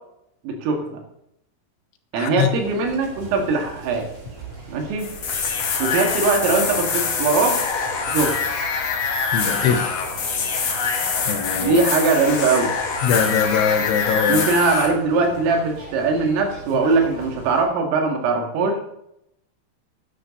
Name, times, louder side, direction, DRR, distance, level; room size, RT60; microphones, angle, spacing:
voice 1, 0.4-1.0 2.1-4.1 4.7-5.1 5.8-7.6 8.1-8.4 11.6-12.7 14.3-18.8, right 4 dB, 80° right, 4 dB, 4.6 m, -21 dB
voice 2, 2.2-2.5 9.3-10.0 11.3-11.8 13.0-14.5, left 7 dB, 75° left, 7 dB, 3.2 m, -22 dB
sound 1, 2.4-17.6, right 3 dB, 35° right, 4.4 m, -40 dB
sound 2, 5.0-14.9, left 5 dB, 55° left, 1.9 m, -24 dB
10.0 x 9.6 x 6.5 m, 0.79 s
omnidirectional pair, 5.8 m